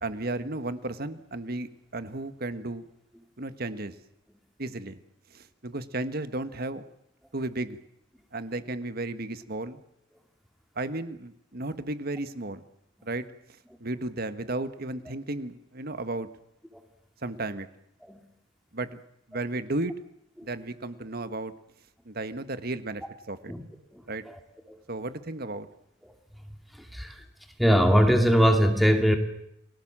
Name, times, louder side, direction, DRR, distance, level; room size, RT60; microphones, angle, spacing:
voice 1, 0.0-2.9 3.4-3.9 4.6-5.0 5.3-6.8 7.3-7.8 8.3-9.8 10.7-12.6 13.0-13.3 13.8-16.3 17.2-17.7 18.7-19.0 19.3-19.9 20.4-21.5 22.0-23.5 24.1-24.2 24.9-25.7, right 2 dB, 55° right, 11 dB, 1.6 m, -34 dB
voice 2, 23.9-24.4 24.7-24.8 26.7-27.2 27.6-29.2, equal, ahead, 4 dB, 2.5 m, -22 dB
29.5 x 20.0 x 7.5 m, 0.76 s
head